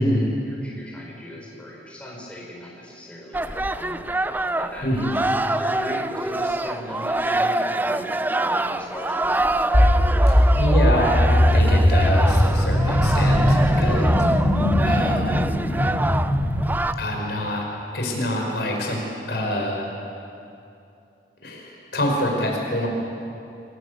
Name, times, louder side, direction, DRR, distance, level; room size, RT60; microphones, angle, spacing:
voice 1, 0.5-4.1 4.6-5.1 5.4-8.0 8.3-9.4 13.8-14.0, equal, 5° left, -3 dB, 4.7 m, -38 dB
sound 1, 3.3-16.9, right 1 dB, 10° right, 0.5 m, -25 dB
voice 2, 4.8-5.2 10.2-14.1 14.8-15.5 17.0-17.7 17.9-19.0 19.3-19.8 21.4-22.9, equal, 70° left, 0 dB, 5.3 m, -25 dB
sound 2, 9.7-16.6, equal, 35° left, 3.1 m, -19 dB
26.5 x 17.5 x 8.2 m, 2.7 s
head